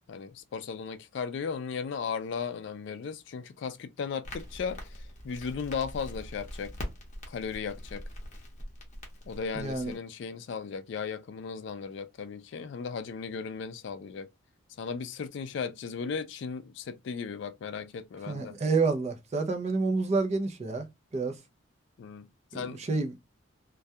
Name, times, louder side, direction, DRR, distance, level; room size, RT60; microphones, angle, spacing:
voice 1, 0.1-6.7 7.3-8.0 9.3-14.3 14.8-18.6 22.0-22.8, left 6 dB, 55° left, 0.3 m, -36 dB
Crackle, 4.2-10.0, equal, 35° left, 0.7 m, -43 dB
voice 2, 9.5-9.9 18.3-20.9 21.1-21.4 22.5-23.1, right 3 dB, 30° right, 0.4 m, -29 dB
2.2 x 2.2 x 2.7 m
head